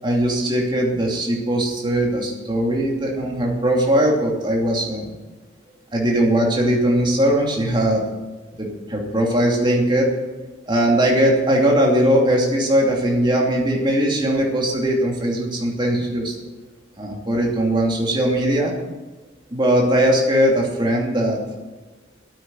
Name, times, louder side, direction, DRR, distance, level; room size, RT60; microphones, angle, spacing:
voice 1, 0.0-5.1 5.9-8.0 8.6-10.1 10.7-16.3 17.0-18.7 19.5-21.4, right 1 dB, 25° right, -1 dB, 2.7 m, -19 dB
9.4 x 9.0 x 9.7 m, 1.1 s
head